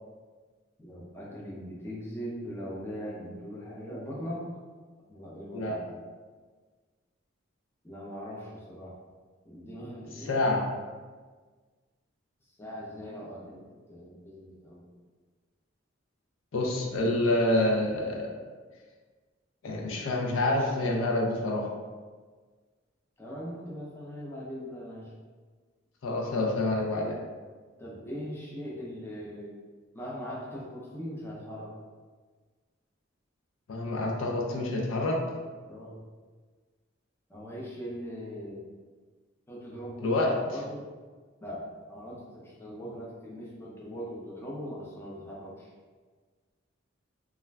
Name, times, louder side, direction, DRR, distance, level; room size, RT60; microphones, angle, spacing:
voice 1, 0.8-4.4 5.1-6.0 7.8-9.0 9.4-10.4 12.6-13.6 13.9-14.9 23.2-25.1 27.8-29.5 29.9-31.7 35.6-36.0 37.3-38.7 39.5-40.9 41.4-45.7, equal, 10° left, -5 dB, 0.5 m, -40 dB
voice 2, 10.3-10.6 16.5-18.3 19.6-21.6 26.0-27.2 33.7-35.2 40.0-40.3, left 1 dB, 75° left, -1 dB, 0.4 m, -27 dB
2.4 x 2.1 x 3.2 m, 1.4 s
head